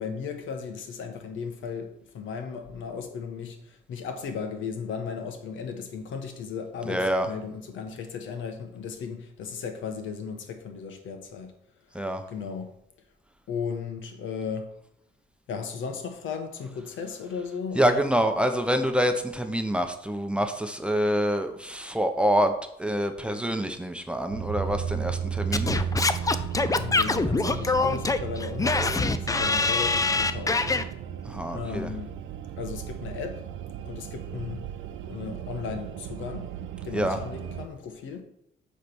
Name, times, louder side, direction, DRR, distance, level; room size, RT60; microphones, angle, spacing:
voice 1, 0.0-11.5 12.3-12.7 13.5-14.7 15.5-18.0 26.7-30.9 31.5-32.2 32.6-33.4 33.8-34.6 35.1-36.5 36.8-38.2, left 6 dB, 80° left, 1.2 m, -35 dB
voice 2, 6.9-7.3 11.9-12.2 17.7-22.5 22.8-25.7 31.2-31.9 36.9-37.2, equal, 5° right, 0.8 m, -26 dB
sound 1, 24.3-37.7, right 8 dB, 85° right, 0.6 m, -34 dB
Singing / Scratching (performance technique), 25.5-30.8, left 3 dB, 15° left, 0.5 m, -24 dB
8.3 x 3.4 x 6.1 m
cardioid pair, 90°, 20 cm